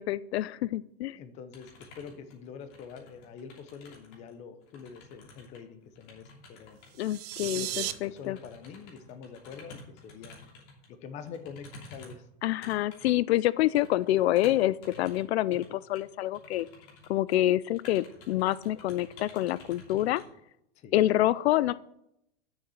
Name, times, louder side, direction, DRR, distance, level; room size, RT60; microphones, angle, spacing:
voice 1, 0.0-1.2 7.0-8.4 12.4-16.7 17.1-20.2 20.9-21.7, left 14 dB, 75° left, 18 dB, 0.5 m, -27 dB
voice 2, 1.1-6.8 7.4-10.4 10.9-12.3 20.8-21.0, left 6 dB, 20° left, 9 dB, 0.7 m, -45 dB
sound 1, 1.5-4.3 4.6-10.9 11.2-15.2 15.5-15.7 16.0-16.1 16.3-17.4 17.7-20.2, left 3 dB, 45° left, 3.0 m, -51 dB
sound 2, 6.9-7.9, right 15 dB, 40° right, 0.5 m, -35 dB
7.1 x 6.5 x 7.8 m, 0.78 s
supercardioid pair, 165°, 32 cm